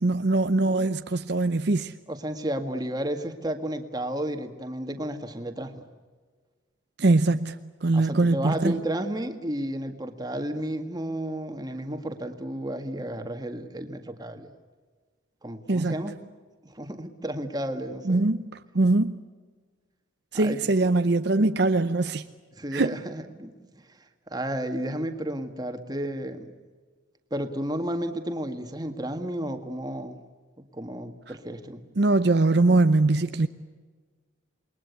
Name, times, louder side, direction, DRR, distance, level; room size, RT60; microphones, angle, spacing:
voice 1, 0.0-1.9 7.0-8.8 15.7-15.9 18.0-18.5 18.7-19.2 20.3-22.2 22.7-22.9 32.0-33.5, right 2 dB, 55° right, 0.7 m, -22 dB
voice 2, 2.1-5.8 7.9-14.5 15.4-16.1 16.6-18.3 20.3-20.6 22.6-23.5 24.3-26.5 27.3-30.2 30.7-31.8, right 1 dB, 20° right, 1.9 m, -32 dB
28.0 x 21.5 x 8.3 m
head